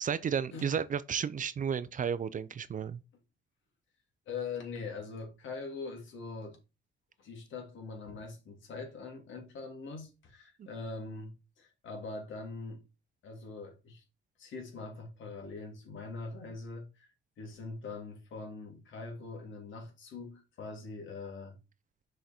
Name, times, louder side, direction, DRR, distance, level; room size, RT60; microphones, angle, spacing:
voice 1, 0.0-3.0 10.6-10.7, right 7 dB, 40° right, 0.5 m, -33 dB
voice 2, 4.3-6.6 7.2-12.8 13.2-14.0 14.4-17.1 17.4-21.6, left 4 dB, 75° left, 2.6 m, -42 dB
6.5 x 4.0 x 4.3 m
cardioid pair, 90°, 20 cm